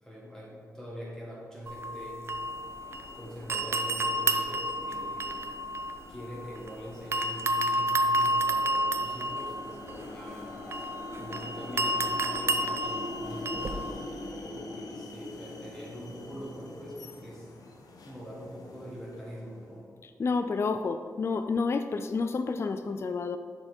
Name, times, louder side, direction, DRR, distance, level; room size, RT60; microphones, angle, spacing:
voice 1, 0.0-2.2 3.1-5.4 6.1-10.6 11.2-14.0 14.4-17.5 18.0-19.9, equal, 10° left, -5 dB, 1.7 m, -43 dB
sound 1, 1.7-3.2 3.5-6.7 7.1-13.9, right 1 dB, 40° right, 0.5 m, -30 dB
sound 2, 2.2-19.7, left 2 dB, 75° left, 0.9 m, -44 dB
voice 2, 20.2-23.4, left 4 dB, 40° left, 8 dB, 0.3 m, -29 dB
6.9 x 4.4 x 5.1 m, 2.2 s
cardioid pair, 90°, 6 cm